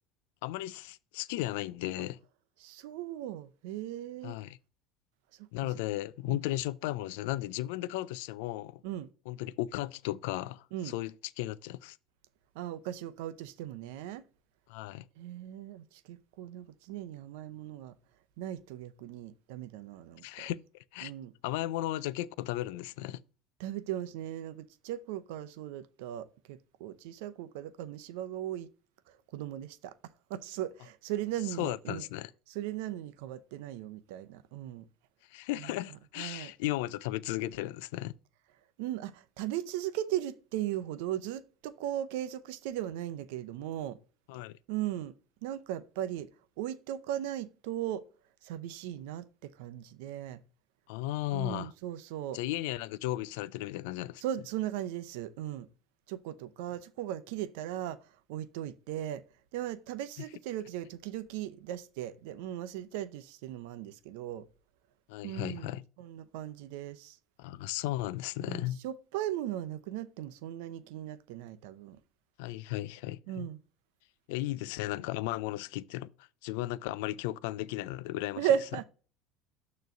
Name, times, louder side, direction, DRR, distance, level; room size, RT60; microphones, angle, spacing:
voice 1, 0.4-2.2 4.2-4.6 5.5-8.8 9.3-12.0 14.7-15.0 20.2-21.1 21.4-23.2 31.6-32.3 35.3-38.1 44.3-44.6 50.9-51.7 52.3-54.2 65.1-65.8 67.4-68.8 72.4-73.5 74.3-78.5, left 15 dB, 80° left, 0.4 m, -35 dB
voice 2, 2.6-4.4 5.4-5.7 6.3-6.4 8.8-9.1 10.7-10.9 12.5-14.2 15.2-17.9 18.4-20.5 21.0-21.3 23.6-28.7 29.1-32.0 32.5-34.9 35.6-35.7 36.2-36.5 38.8-44.0 44.7-45.1 45.4-46.3 46.6-48.0 48.4-50.4 51.3-52.4 54.2-55.7 56.1-58.0 58.3-59.2 59.5-64.4 65.2-67.2 68.4-72.0 73.3-73.6 78.4-78.8, right 11 dB, 80° right, 0.6 m, -37 dB
6.8 x 3.1 x 5.9 m
supercardioid pair, 95°, 0 cm